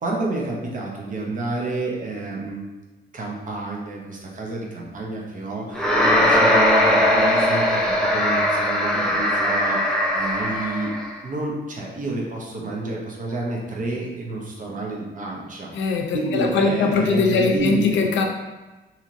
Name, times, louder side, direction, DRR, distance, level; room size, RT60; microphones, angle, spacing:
voice 1, 0.0-2.6 3.1-10.9 11.2-15.7 16.1-18.0, right 2 dB, 45° right, -2 dB, 0.7 m, -29 dB
sound 1, 5.7-11.1, left 1 dB, 5° left, 0.4 m, -20 dB
voice 2, 15.7-18.3, left 4 dB, 90° left, 3 dB, 0.5 m, -21 dB
2.8 x 2.8 x 2.5 m, 1.1 s
cardioid pair, 115°, 19 cm